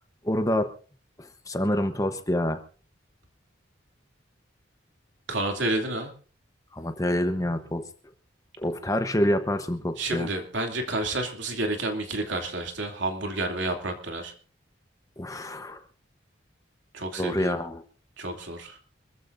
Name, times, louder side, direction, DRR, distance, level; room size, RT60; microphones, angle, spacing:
voice 1, 0.2-0.7 1.2-2.6 6.7-7.8 8.6-10.3 15.2-15.8 17.2-17.8, left 1 dB, 15° left, 7 dB, 1.1 m, -27 dB
voice 2, 5.3-6.1 10.0-14.3 16.9-17.6 18.2-18.8, right 2 dB, 65° right, 3 dB, 2.9 m, -30 dB
26.0 x 14.0 x 2.7 m, 0.39 s
head